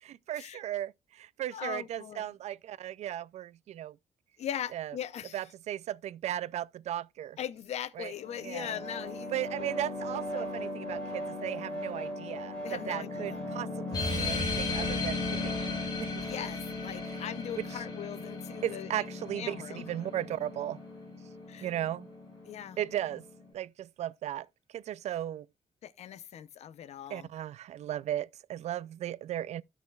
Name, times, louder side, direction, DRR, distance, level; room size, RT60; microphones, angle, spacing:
voice 1, 0.0-4.0 4.7-4.9 5.3-7.4 8.0-8.7 9.3-15.6 16.0-16.2 17.5-17.8 18.6-20.8 21.6-22.1 22.8-23.3 23.5-24.5 24.7-25.5 27.1-29.6, right 12 dB, 75° right, 0.4 m, -36 dB
voice 2, 1.5-2.3 4.4-5.4 7.4-9.3 9.6-9.7 12.6-13.4 16.2-19.8 21.5-21.7 22.5-22.8 25.8-27.3, left 10 dB, 75° left, 0.7 m, -40 dB
sound 1, 8.1-23.5, left 2 dB, 10° left, 4.6 m, -38 dB
sound 2, 13.9-18.9, left 3 dB, 40° left, 2.9 m, -36 dB
14.5 x 5.9 x 2.3 m
wide cardioid pair, 175°, 11 cm